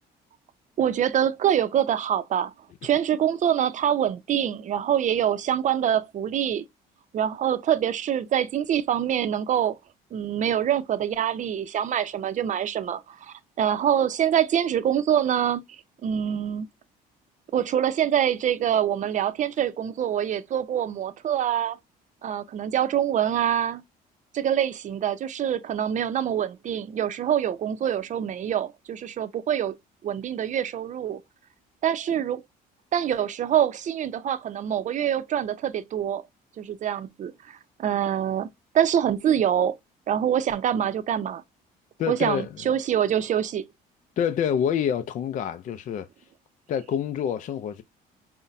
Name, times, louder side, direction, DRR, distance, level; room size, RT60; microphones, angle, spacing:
voice 1, 0.8-2.5 2.8-6.6 7.1-9.8 10.1-15.6 16.0-16.7 17.5-21.8 22.2-23.8 24.3-29.7 30.0-31.2 31.8-32.4 32.9-36.2 36.6-38.5 38.7-39.7 40.1-41.4 42.1-43.6, right 9 dB, 45° right, 0.6 m, -25 dB
voice 2, 42.0-42.5 44.2-46.1 46.7-47.8, left 8 dB, 50° left, 0.4 m, -27 dB
5.5 x 2.1 x 2.5 m
cardioid pair, 110°, 17 cm